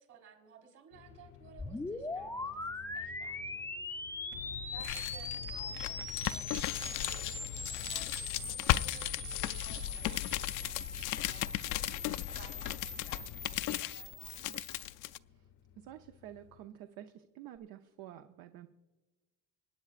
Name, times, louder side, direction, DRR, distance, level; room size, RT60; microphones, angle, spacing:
voice 1, 0.0-4.3 4.7-14.4, right 7 dB, 55° right, 1 dB, 3.6 m, -59 dB
sound 1, 0.9-16.7, left 9 dB, 80° left, 0.9 m, -58 dB
sound 2, 1.6-14.9, left 3 dB, 5° left, 0.5 m, -42 dB
sound 3, 4.3-15.2, left 15 dB, 60° left, 0.4 m, -36 dB
voice 2, 15.7-18.7, right 12 dB, 70° right, 8 dB, 0.7 m, -50 dB
25.0 x 9.7 x 2.5 m, 1.2 s
cardioid pair, 130°, 36 cm